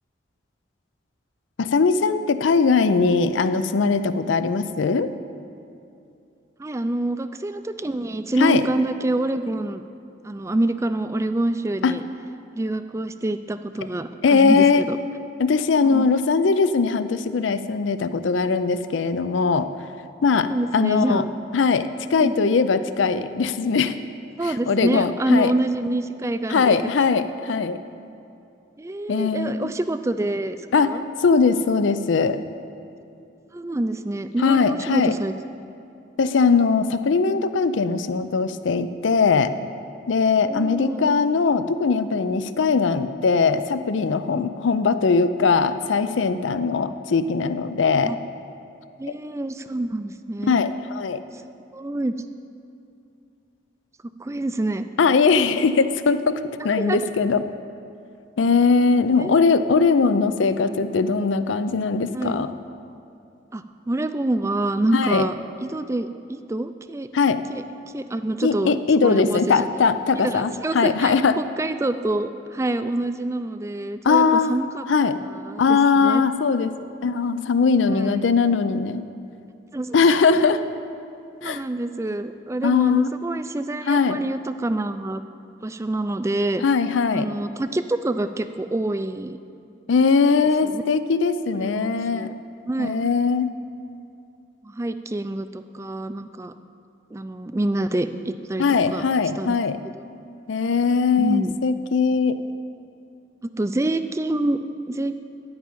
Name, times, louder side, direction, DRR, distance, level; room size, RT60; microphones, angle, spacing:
voice 1, 1.6-5.1 8.4-8.6 11.8-12.0 14.2-14.8 15.4-19.7 20.2-21.2 21.5-24.0 24.4-25.5 26.5-27.8 29.1-29.7 30.7-32.4 34.4-35.1 36.2-39.5 40.1-48.1 50.5-51.2 55.0-57.4 58.4-62.5 64.9-65.3 67.1-67.4 68.4-71.4 74.0-74.6 74.9-75.2 75.6-76.7 77.0-79.0 79.9-80.6 81.4-81.6 82.6-83.1 83.9-84.2 86.6-87.3 89.9-92.3 92.8-93.5 98.6-99.8 100.5-102.4, left 5 dB, 75° left, 12 dB, 0.5 m, -20 dB
voice 2, 6.6-9.8 10.2-12.0 12.5-15.0 15.9-16.1 20.5-21.3 22.2-22.3 24.4-26.9 27.5-27.7 28.8-31.0 33.5-35.3 40.4-41.2 44.3-44.5 46.7-46.9 48.0-48.2 49.0-50.6 51.7-52.1 54.0-54.9 56.8-57.0 59.2-59.3 62.1-62.4 63.5-65.3 65.6-67.1 67.5-67.6 67.9-68.7 69.0-69.7 70.2-74.9 75.5-76.2 77.9-78.2 79.7-79.9 81.4-85.2 85.6-86.6 87.1-89.4 90.6-90.8 91.5-92.3 92.7-93.0 94.6-96.5 97.1-98.6 98.9-99.0 99.4-99.6 99.9-100.0 101.2-101.6 103.4-105.2, right 2 dB, 15° right, 10 dB, 0.3 m, -26 dB
11.5 x 5.7 x 8.5 m, 2.6 s
head